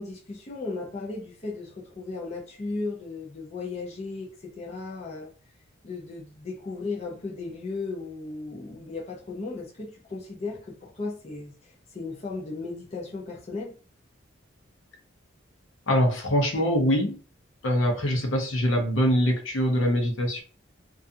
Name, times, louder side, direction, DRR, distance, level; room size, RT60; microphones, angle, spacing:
voice 1, 0.0-5.3 5.8-13.7, left 3 dB, 30° left, -2 dB, 0.5 m, -36 dB
voice 2, 15.9-17.2 17.6-20.4, equal, 75° left, 3 dB, 0.7 m, -23 dB
2.4 x 2.3 x 2.6 m, 0.38 s
head